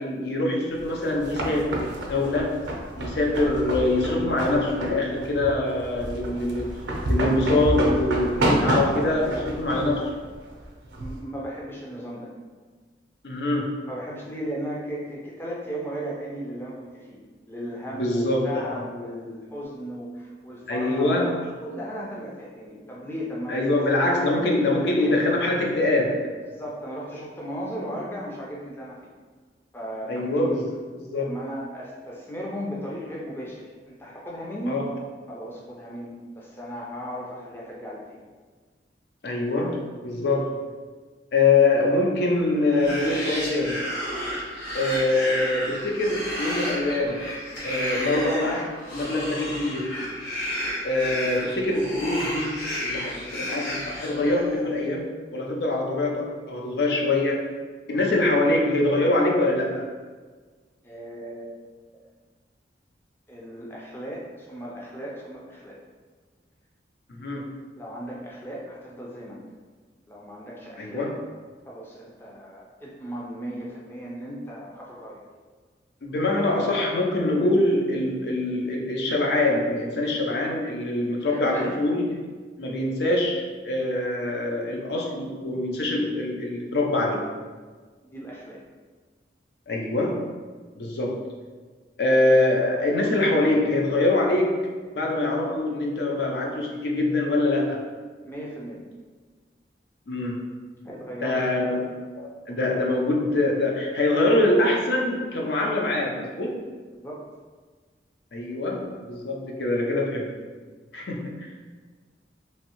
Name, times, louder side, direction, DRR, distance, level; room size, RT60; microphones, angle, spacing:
voice 1, 0.0-2.6 3.0-10.1 13.2-13.8 18.0-18.8 20.7-21.4 23.5-26.4 30.1-30.7 30.9-31.3 34.7-34.9 39.2-40.7 41.3-43.9 44.7-47.3 47.6-50.2 50.8-57.4 57.9-59.8 67.1-67.6 70.8-71.1 76.0-82.2 82.6-87.3 89.7-90.3 90.8-91.2 92.0-94.7 94.9-97.8 100.1-100.6 101.2-106.5 108.3-110.3 110.9-111.5, left 2 dB, 65° left, 0 dB, 0.5 m, -24 dB
sound 1, 0.8-11.2, right 1 dB, 80° right, 0.5 m, -29 dB
voice 2, 11.0-12.3 13.8-17.2 17.5-23.6 24.0-24.4 24.7-25.2 26.4-29.1 29.7-30.5 31.2-34.8 35.3-38.2 60.8-61.6 63.3-65.8 67.8-69.4 70.1-71.1 71.7-75.2 81.3-81.8 88.0-88.6 98.2-98.8 100.8-101.4 106.9-107.2, equal, 15° left, -4 dB, 0.4 m, -36 dB
sound 2, 42.6-54.6, equal, 90° left, 1.2 m, -32 dB
3.2 x 2.6 x 2.9 m, 1.4 s
head